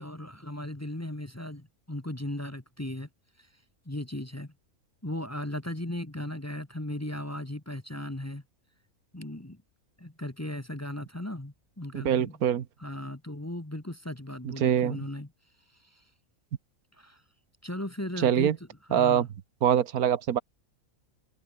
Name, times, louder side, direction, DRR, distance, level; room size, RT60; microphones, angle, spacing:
voice 1, 0.0-3.1 3.4-3.5 3.8-4.5 5.0-8.4 9.1-9.6 10.0-12.4 12.8-15.3 15.9-16.0 17.0-17.2 17.6-18.6 18.9-19.3, left 1 dB, 10° left, 1.2 m, -37 dB
voice 2, 11.9-12.6 14.4-15.1 18.2-18.6 18.9-19.3 19.6-20.4, right 9 dB, 90° right, 1.5 m, -24 dB
omnidirectional pair, 1.5 m